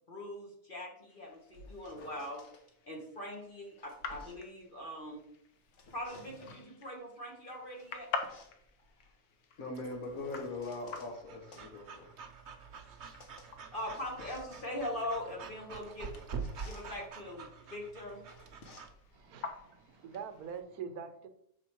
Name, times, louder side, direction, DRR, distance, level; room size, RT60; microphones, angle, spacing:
voice 1, 0.1-2.4 2.8-5.2 5.9-8.1 13.7-16.1 16.6-18.2, left 1 dB, 35° left, -1 dB, 1.5 m, -41 dB
sound 1, 1.1-20.6, left 5 dB, 85° left, 1.3 m, -48 dB
sound 2, 1.3-2.6 3.5-5.3 5.6-6.7 7.5-11.1 11.5-20.6, left 2 dB, 55° left, 1.3 m, -56 dB
voice 2, 9.6-12.1, left 2 dB, 70° left, 1 dB, 2.1 m, -41 dB
Breathing / Dog, 9.7-18.9, right 5 dB, 55° right, 1.0 m, -47 dB
voice 3, 19.1-21.3, right 7 dB, 80° right, 9 dB, 1.2 m, -44 dB
6.8 x 4.9 x 4.5 m, 0.73 s
omnidirectional pair, 1.6 m